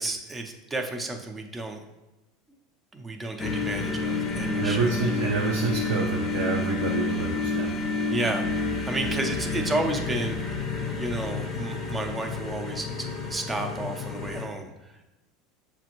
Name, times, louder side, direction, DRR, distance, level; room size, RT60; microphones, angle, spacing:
voice 1, 0.0-1.8 2.9-5.0 8.1-8.5 8.9-10.5 11.0-14.9, right 2 dB, 15° right, 4 dB, 0.5 m, -32 dB
sound 1, 3.4-14.5, left 3 dB, 30° left, 0.6 m, -30 dB
voice 2, 4.6-7.7, right 3 dB, 80° right, -2 dB, 0.6 m, -28 dB
6.6 x 2.5 x 3.0 m, 1.0 s
supercardioid pair, 125°, 0 cm